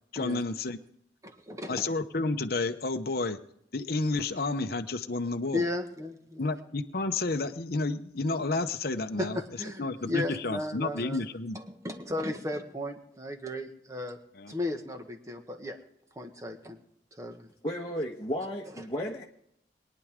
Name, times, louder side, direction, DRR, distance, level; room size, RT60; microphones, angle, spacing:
voice 1, 0.1-0.8 1.7-3.4 3.7-5.6 6.4-9.4 9.8-11.6 14.4-14.5, left 3 dB, 55° left, 7 dB, 0.9 m, -31 dB
voice 2, 1.2-1.8 5.5-6.5 9.2-11.2 11.5-14.2 14.5-15.8 16.1-16.8 17.1-17.5, left 1 dB, 20° right, 5 dB, 1.5 m, -35 dB
voice 3, 17.6-19.2, equal, 25° left, -3 dB, 1.3 m, -33 dB
22.0 x 10.5 x 3.7 m, 0.74 s
head